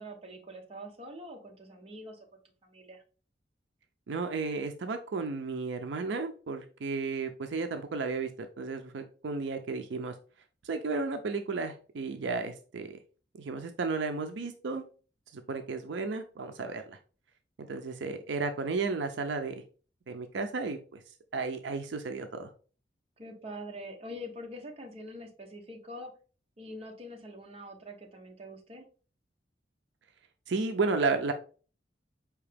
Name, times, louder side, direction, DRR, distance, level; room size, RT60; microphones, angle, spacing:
voice 1, 0.0-2.2 2.6-3.0 23.2-26.1 26.6-28.9, equal, 35° right, 2 dB, 0.8 m, -44 dB
voice 2, 4.1-10.1 10.6-13.0 13.3-14.8 15.3-17.0 17.6-19.6 20.1-21.0 21.3-22.5 30.5-31.3, right 4 dB, 75° right, 8 dB, 0.5 m, -33 dB
4.8 x 2.8 x 3.3 m, 0.38 s
head